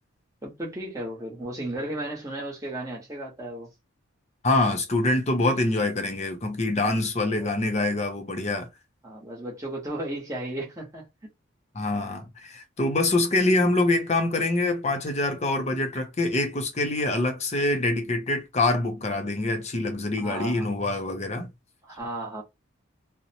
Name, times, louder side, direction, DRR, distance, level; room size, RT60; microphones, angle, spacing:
voice 1, 0.4-3.7 6.8-6.9 7.4-7.5 9.0-11.0 20.2-20.7 21.8-22.4, right 1 dB, 15° right, 0.9 m, -34 dB
voice 2, 4.4-8.7 11.7-21.5, left 2 dB, 30° left, 0.5 m, -25 dB
2.7 x 2.0 x 2.7 m
head